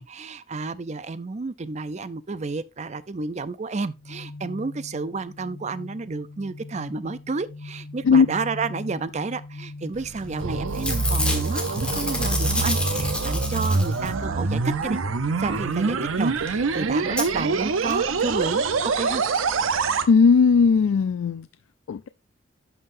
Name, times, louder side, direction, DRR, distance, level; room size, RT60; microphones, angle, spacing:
voice 1, 0.0-15.0 15.4-19.2, right 3 dB, 35° right, 0.5 m, -31 dB
sound 1, 4.0-17.0, left 2 dB, 65° left, 1.4 m, -40 dB
sound 2, 9.9-20.1, right 4 dB, 85° right, 0.7 m, -25 dB
Packing tape duct tape / Tearing, 10.2-10.4 10.7-14.3 16.2-16.3 16.5-16.6 17.2-17.3 17.9-18.0 18.2-18.3, left 2 dB, 5° left, 1.4 m, -29 dB
voice 2, 20.1-21.5 21.9-22.1, left 5 dB, 80° left, 0.4 m, -17 dB
11.0 x 5.6 x 2.6 m
head